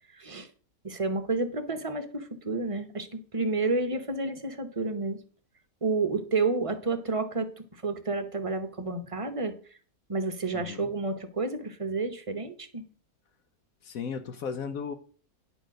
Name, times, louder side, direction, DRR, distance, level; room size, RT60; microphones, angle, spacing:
voice 1, 0.1-0.5 0.8-5.2 5.8-9.8 10.1-12.8, right 3 dB, 25° right, 8 dB, 0.8 m, -30 dB
voice 2, 10.5-10.9 13.8-14.9, left 6 dB, 75° left, 9 dB, 1.2 m, -35 dB
9.9 x 4.4 x 6.3 m, 0.43 s
omnidirectional pair, 1.5 m